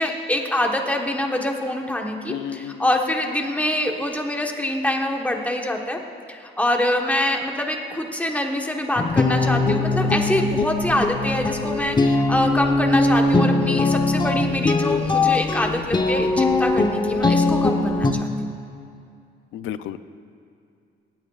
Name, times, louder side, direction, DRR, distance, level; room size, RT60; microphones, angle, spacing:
voice 1, 0.0-6.0 6.3-18.3, left 1 dB, 5° left, 2 dB, 1.2 m, -25 dB
voice 2, 2.3-2.8 19.5-20.0, left 10 dB, 85° left, 13 dB, 0.5 m, -32 dB
sound 1, 9.0-18.1, left 2 dB, 25° left, 0.8 m, -21 dB
24.5 x 9.0 x 2.4 m, 2.4 s
cardioid pair, 90°, 20 cm